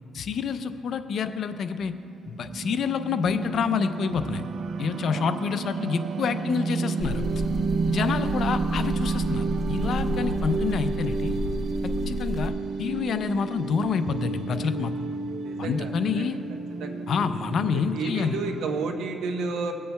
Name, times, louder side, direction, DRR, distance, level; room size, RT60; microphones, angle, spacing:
voice 1, 0.1-1.9 2.3-4.4 4.8-7.2 7.9-11.4 12.1-12.5 12.8-14.9 15.6-16.4 17.1-18.4, left 6 dB, 60° left, 9 dB, 0.6 m, -27 dB
sound 1, 1.9-18.9, right 4 dB, 60° right, 0.6 m, -31 dB
sound 2, 7.0-12.5, left 1 dB, 20° right, 0.9 m, -32 dB
voice 2, 15.4-16.3 16.8-17.0 17.7-19.7, right 4 dB, 80° right, 5 dB, 1.0 m, -32 dB
23.5 x 8.5 x 2.3 m, 2.6 s
cardioid pair, 90°, 0 cm